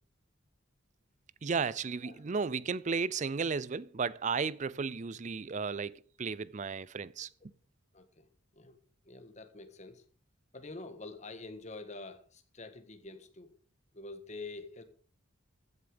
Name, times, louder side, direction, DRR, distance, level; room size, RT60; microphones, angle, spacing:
voice 1, 1.4-7.3, right 5 dB, 35° right, 0.4 m, -34 dB
voice 2, 7.9-8.3 8.5-8.8 9.0-10.0 10.5-13.5 13.9-14.8, left 3 dB, 35° left, 1.6 m, -46 dB
14.5 x 8.1 x 5.2 m
head